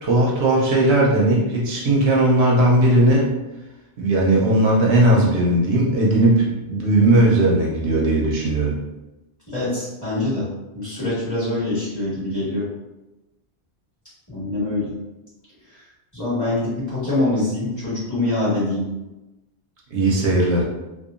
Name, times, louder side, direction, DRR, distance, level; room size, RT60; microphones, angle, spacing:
voice 1, 0.0-3.3 4.0-8.8 19.9-20.6, right 1 dB, 75° right, -3 dB, 0.9 m, -17 dB
voice 2, 9.5-10.5 10.7-12.7 14.3-14.9 15.7-15.8 16.1-18.9, left 2 dB, 15° left, -11 dB, 1.2 m, -24 dB
2.8 x 2.2 x 2.4 m, 1.0 s
omnidirectional pair, 1.2 m